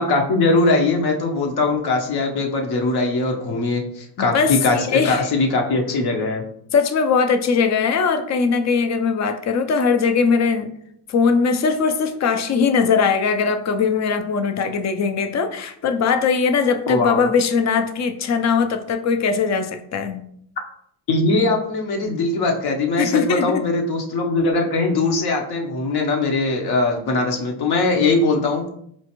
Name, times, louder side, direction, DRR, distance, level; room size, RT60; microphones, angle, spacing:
voice 1, 0.0-6.4 16.9-17.3 21.1-28.7, left 3 dB, 55° left, 3 dB, 0.9 m, -21 dB
voice 2, 4.2-5.3 6.7-10.7 11.1-20.2 23.0-23.6, left 5 dB, 40° left, 8 dB, 0.5 m, -20 dB
4.4 x 2.4 x 2.9 m, 0.69 s
cardioid pair, 95°, 46 cm